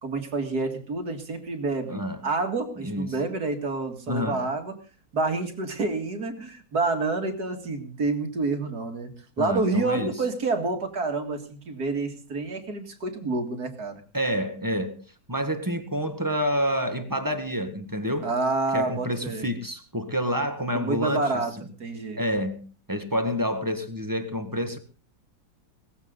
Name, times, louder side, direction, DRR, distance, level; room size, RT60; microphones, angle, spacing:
voice 1, 0.0-4.7 5.1-9.1 9.4-14.0 18.2-19.4 20.7-21.5 21.8-22.2, right 3 dB, 55° right, 6 dB, 2.6 m, -28 dB
voice 2, 1.9-2.2 2.8-3.2 4.1-4.4 9.4-10.1 14.1-15.0 15.3-18.3 18.7-21.3 22.2-24.8, equal, 10° right, 8 dB, 1.6 m, -28 dB
18.5 x 15.0 x 3.9 m, 0.36 s
omnidirectional pair, 2.0 m